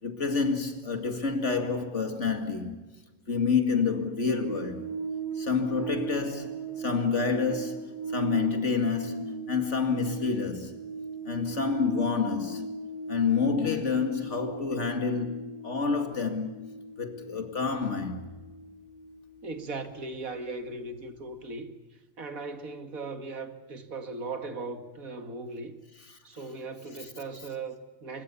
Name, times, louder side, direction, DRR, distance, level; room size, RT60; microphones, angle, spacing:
voice 1, 0.0-2.8 3.3-4.8 5.4-10.8 11.2-12.7 13.1-16.7 17.0-18.2, left 5 dB, 55° left, 2.6 m, -28 dB
sound 1, 4.4-21.0 21.3-21.4, right 4 dB, 90° left, 6.2 m, -39 dB
voice 2, 19.4-21.7 22.2-25.8 26.2-28.2, right 3 dB, 85° right, 2.4 m, -38 dB
24.5 x 21.5 x 7.0 m
omnidirectional pair, 1.4 m